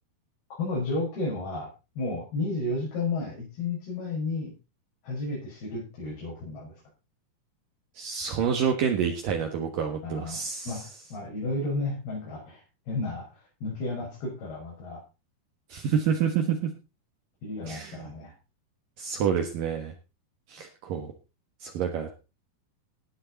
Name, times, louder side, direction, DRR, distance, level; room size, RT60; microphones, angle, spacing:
voice 1, 0.6-1.7 2.0-4.5 5.0-6.7 10.0-12.6 12.9-13.3 13.6-15.0 17.4-18.3, left 2 dB, 75° left, -5 dB, 8.5 m, -32 dB
voice 2, 7.9-10.8 15.7-16.7 17.7-18.1 19.0-19.9 20.5-21.1 21.6-22.1, right 7 dB, 65° right, 4 dB, 3.0 m, -28 dB
18.0 x 9.8 x 4.1 m, 0.30 s
omnidirectional pair, 4.5 m